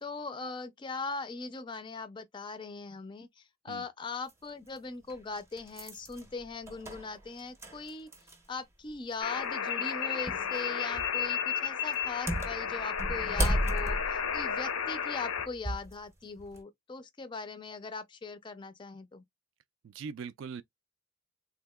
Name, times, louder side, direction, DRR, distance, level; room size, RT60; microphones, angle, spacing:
voice 1, 0.0-8.1 8.5-19.2, left 4 dB, 20° left, 0.3 m, -40 dB
sound 1, 4.3-4.4 5.1-8.6 8.9-9.0 10.3-10.5 10.9-11.3 11.9-15.9 16.4-16.6, equal, 15° right, 0.6 m, -34 dB
sound 2, 9.2-15.5, left 7 dB, 90° left, 0.6 m, -33 dB
voice 2, 19.8-20.6, right 5 dB, 65° right, 0.3 m, -41 dB
3.5 x 2.8 x 2.2 m
head